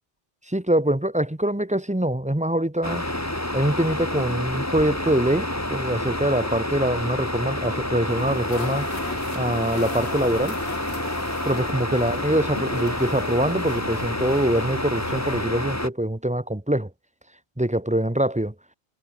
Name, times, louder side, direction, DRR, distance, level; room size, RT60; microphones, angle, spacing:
voice 1, 0.5-3.0 3.5-8.9 9.3-10.6 11.5-16.9 17.6-18.5, right 1 dB, 5° right, 1.3 m, -24 dB
sound 1, 2.8-15.9, left 1 dB, 15° left, 2.3 m, -28 dB
sound 2, 8.1-15.5, left 4 dB, 80° left, 2.4 m, -38 dB
omnidirectional pair, 1.1 m